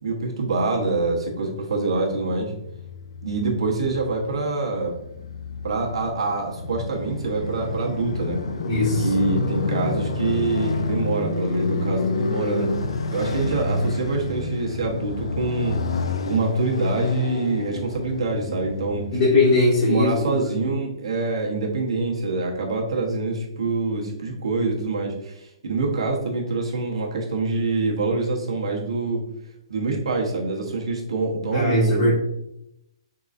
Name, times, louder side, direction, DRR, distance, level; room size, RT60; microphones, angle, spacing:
voice 1, 0.0-2.5 3.2-4.9 5.6-8.4 9.0-12.7 13.1-15.8 16.3-19.1 19.9-29.2 29.7-32.1, right 3 dB, 80° right, -1 dB, 1.1 m, -25 dB
Motorcycle, 2.0-20.1, left 3 dB, 75° left, 0.5 m, -29 dB
voice 2, 8.7-9.1 19.1-20.4 31.5-32.1, left 2 dB, 45° left, -9 dB, 1.5 m, -20 dB
3.9 x 3.8 x 2.5 m, 0.84 s
hypercardioid pair, 140°, 3 cm